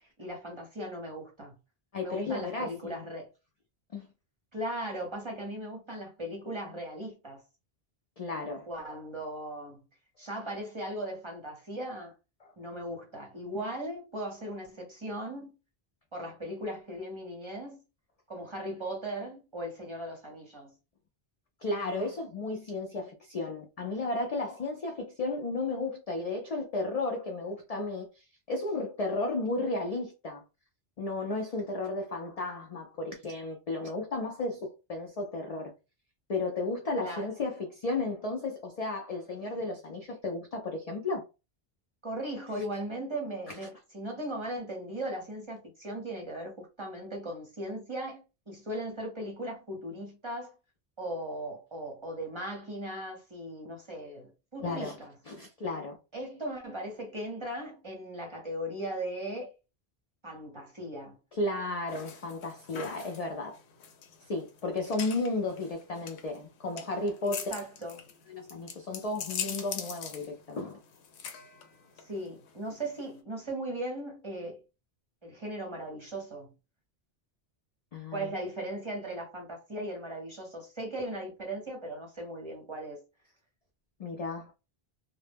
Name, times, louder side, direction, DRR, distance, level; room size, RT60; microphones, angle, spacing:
voice 1, 0.0-1.5 2.0-3.3 4.5-7.4 8.7-9.8 10.2-12.1 12.6-15.5 16.1-17.8 18.3-20.7 37.0-37.3 42.0-50.5 51.0-55.1 56.1-59.5 60.2-61.2 67.2-68.1 72.0-74.6 75.2-76.5 78.1-83.0, right 1 dB, 30° right, 0.7 m, -38 dB
voice 2, 1.9-3.0 3.9-4.1 8.2-8.7 21.6-30.4 31.0-35.7 36.3-41.2 43.6-43.7 54.6-54.9 55.3-56.0 61.3-63.6 64.3-67.5 68.3-70.8 77.9-78.3 84.0-84.5, left 2 dB, 55° left, 0.4 m, -34 dB
sound 1, 61.9-73.2, left 7 dB, 90° left, 0.8 m, -42 dB
2.1 x 2.0 x 3.3 m
omnidirectional pair, 1.1 m